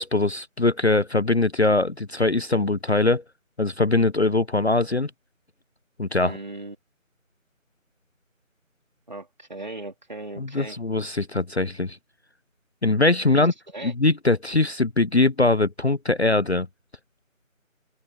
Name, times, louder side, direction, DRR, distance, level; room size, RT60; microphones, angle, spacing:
voice 1, 0.0-3.2 3.6-5.1 6.0-6.4 10.4-12.0 12.8-13.5 13.8-16.7, left 2 dB, 55° left, 0.6 m, -22 dB
voice 2, 6.2-6.8 9.1-10.8 13.2-13.5 13.7-13.9, right 2 dB, 35° right, 3.0 m, -37 dB
open air
figure-of-eight pair, 175°, 41 cm